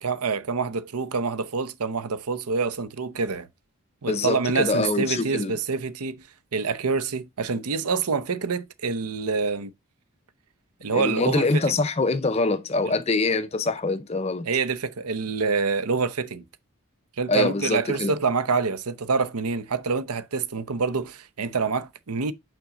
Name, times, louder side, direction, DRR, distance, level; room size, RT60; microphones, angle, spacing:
voice 1, 0.0-3.5 4.0-6.2 6.5-9.7 10.8-11.5 12.9-13.0 14.4-16.4 17.2-22.3, right 4 dB, 90° right, 0.7 m, -26 dB
voice 2, 4.1-5.6 10.9-14.5 17.3-18.1, left 3 dB, 30° left, 0.5 m, -24 dB
5.8 x 5.2 x 3.8 m
head